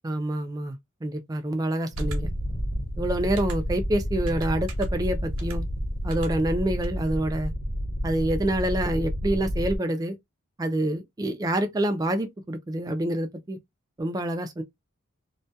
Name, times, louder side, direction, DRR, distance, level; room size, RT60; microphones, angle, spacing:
voice 1, 0.0-2.3 3.0-5.6 6.0-7.5 8.0-10.2 10.6-13.6 14.0-14.6, right 1 dB, 15° right, 0.3 m, -27 dB
sound 1, 1.9-9.8, equal, 55° left, 0.6 m, -30 dB
sound 2, 2.0-2.2 3.4-3.6 4.3-4.9 5.4-5.6 6.1-6.3 6.8-6.9, right 6 dB, 85° right, 0.6 m, -43 dB
2.2 x 2.2 x 2.5 m
head